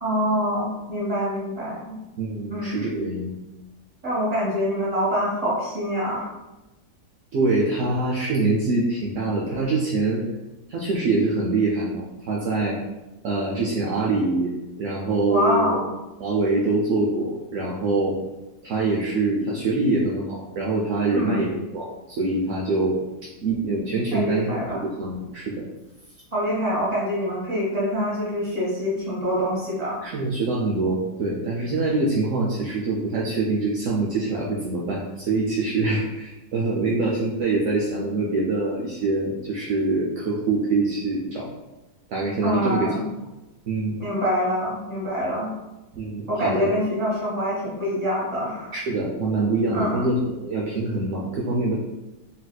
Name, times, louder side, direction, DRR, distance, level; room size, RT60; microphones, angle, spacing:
voice 1, 0.0-2.0 2.5-2.9 4.0-6.3 15.3-15.9 21.1-21.5 24.1-24.8 26.3-30.0 42.4-43.1 44.0-45.5 46.3-48.7 49.7-50.0, equal, 25° right, -7 dB, 1.2 m, -25 dB
voice 2, 2.2-3.3 7.3-10.2 10.7-12.8 13.2-14.5 14.8-15.7 16.2-18.2 18.6-23.0 23.4-25.6 30.0-41.5 42.1-42.9 43.7-44.0 45.9-46.7 48.7-51.7, right 3 dB, 70° right, -3 dB, 0.7 m, -24 dB
4.0 x 2.5 x 2.2 m, 1.0 s
omnidirectional pair, 1.7 m